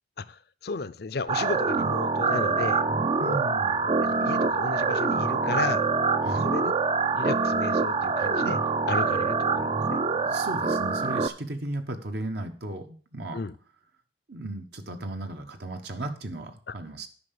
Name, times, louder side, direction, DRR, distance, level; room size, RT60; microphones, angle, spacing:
voice 1, 0.2-2.8 3.3-3.4 3.8-5.8 6.3-6.7 7.1-8.6 8.9-10.0 13.3-13.6 16.7-16.8, left 4 dB, 60° left, 15 dB, 0.6 m, -34 dB
sound 1, 1.3-11.3, right 4 dB, 30° right, 0.5 m, -25 dB
voice 2, 3.2-3.9 6.2-6.5 10.1-13.4 14.3-17.1, right 1 dB, 65° right, 6 dB, 1.3 m, -35 dB
9.7 x 5.8 x 6.9 m, 0.43 s
head